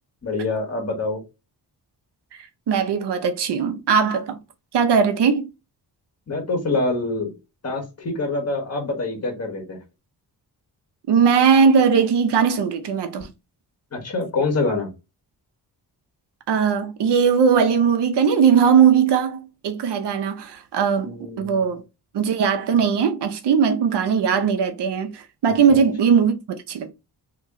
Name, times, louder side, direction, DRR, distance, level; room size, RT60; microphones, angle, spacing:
voice 1, 0.2-1.2 6.3-7.3 7.6-9.8 13.9-14.9 21.0-21.6 25.7-25.8, left 3 dB, 40° left, 1.4 m, -25 dB
voice 2, 2.3-4.4 4.7-5.5 11.1-13.3 16.5-21.8 22.1-26.4 26.7-26.9, right 6 dB, 85° right, 0.7 m, -19 dB
3.0 x 2.9 x 3.6 m
wide cardioid pair, 90°, 40 cm